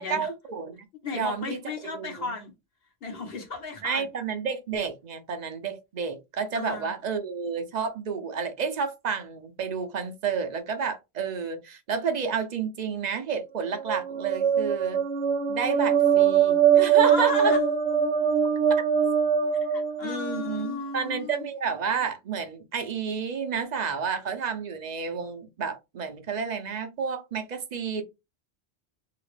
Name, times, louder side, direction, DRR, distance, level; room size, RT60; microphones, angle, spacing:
voice 1, 0.0-0.8 1.1-1.6 1.9-2.3 3.8-15.0 15.5-17.5 20.0-28.0, right 6 dB, 50° right, 0.6 m, -30 dB
voice 2, 1.0-2.5 3.0-4.0 6.5-6.9 17.0-17.6 19.7-21.5, left 4 dB, 65° left, 1.2 m, -34 dB
sound 1, 13.8-20.6, right 7 dB, 80° right, 0.9 m, -22 dB
2.8 x 2.8 x 3.2 m
omnidirectional pair, 1.1 m